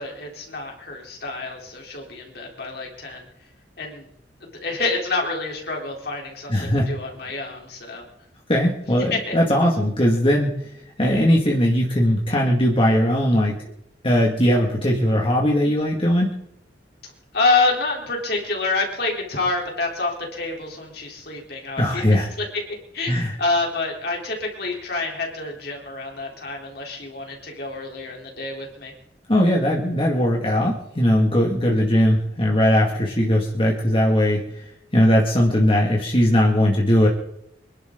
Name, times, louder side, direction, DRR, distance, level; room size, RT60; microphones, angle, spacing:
voice 1, 0.0-3.2 3.8-4.1 4.4-8.0 9.1-9.3 17.3-22.0 22.4-22.5 22.9-28.9, left 3 dB, 60° left, 0 dB, 3.9 m, -27 dB
voice 2, 6.5-6.9 8.5-10.6 11.0-13.5 14.0-16.3 21.8-22.3 23.1-23.4 29.3-34.6 34.9-37.1, equal, 30° left, -2 dB, 2.3 m, -19 dB
25.5 x 11.5 x 4.0 m, 0.80 s
head